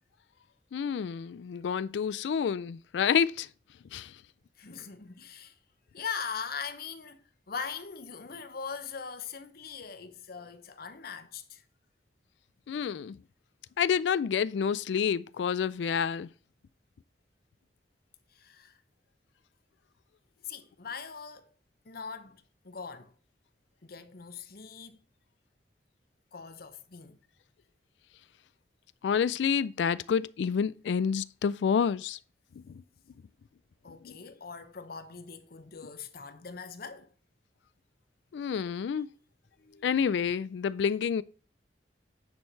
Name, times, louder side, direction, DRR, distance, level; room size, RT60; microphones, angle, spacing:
voice 1, 0.7-3.5 3.9-4.1 12.7-13.1 13.8-16.3 29.0-32.2 34.0-34.1 38.3-39.1 39.8-41.2, left 7 dB, 85° left, 0.3 m, -28 dB
voice 2, 4.6-5.6 5.9-11.6 18.3-18.8 20.4-21.5 21.8-23.1 23.8-25.0 26.3-27.2 33.8-37.1 38.9-39.0 39.6-40.2, left 6 dB, 60° left, 0.9 m, -41 dB
9.6 x 4.5 x 4.5 m
head